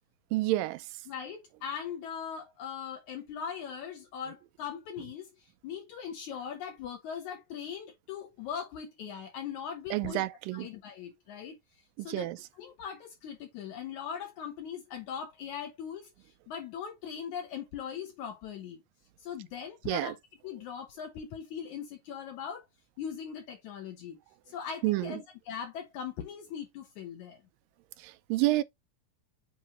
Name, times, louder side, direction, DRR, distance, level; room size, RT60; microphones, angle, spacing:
voice 1, 0.3-0.8 9.9-10.7 12.0-12.4 19.9-20.1 24.8-25.2 28.0-28.6, right 17 dB, 90° right, 2.3 m, -29 dB
voice 2, 1.1-10.3 10.5-11.6 12.0-12.3 12.6-16.1 16.5-18.8 19.2-20.2 20.4-22.7 23.0-24.2 24.5-27.4, left 7 dB, 70° left, 2.2 m, -40 dB
7.9 x 4.2 x 3.0 m
omnidirectional pair, 3.9 m